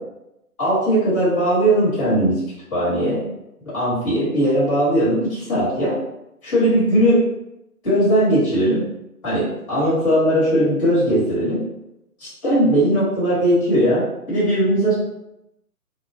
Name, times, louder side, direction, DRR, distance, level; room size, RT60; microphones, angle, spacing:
voice 1, 0.6-2.4 2.7-3.2 3.6-6.0 6.4-7.2 7.8-8.8 9.2-11.6 12.2-14.9, right 1 dB, 20° left, -11 dB, 1.1 m, -19 dB
2.1 x 2.1 x 2.7 m, 0.86 s
hypercardioid pair, 165°, 45 cm